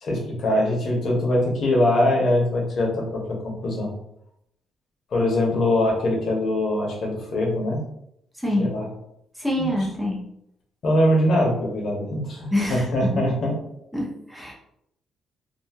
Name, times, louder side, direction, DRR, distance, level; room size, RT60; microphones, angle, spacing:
voice 1, 0.0-3.9 5.1-7.8 8.6-8.9 9.6-9.7 10.8-13.5, left 1 dB, 50° left, -1 dB, 0.8 m, -22 dB
voice 2, 8.4-8.7 9.4-10.2 12.5-13.2 13.9-14.5, left 1 dB, ahead, -2 dB, 0.6 m, -25 dB
2.6 x 2.3 x 2.8 m, 0.76 s
cardioid pair, 140°, 0 cm